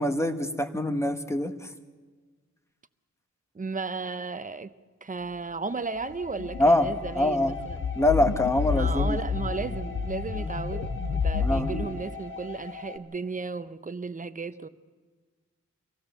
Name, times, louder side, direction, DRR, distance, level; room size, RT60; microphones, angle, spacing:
voice 1, 0.0-1.7 6.6-6.9 7.1-7.5 8.0-9.2 11.4-11.8, left 1 dB, 10° left, 1.2 m, -24 dB
voice 2, 3.5-4.7 5.0-7.8 8.7-14.7, right 4 dB, 25° right, 0.7 m, -35 dB
sound 1, 5.7-13.0, left 4 dB, 40° left, 1.8 m, -42 dB
sound 2, 6.1-11.8, left 4 dB, 85° left, 1.3 m, -30 dB
25.0 x 16.5 x 6.8 m
wide cardioid pair, 115°, 29 cm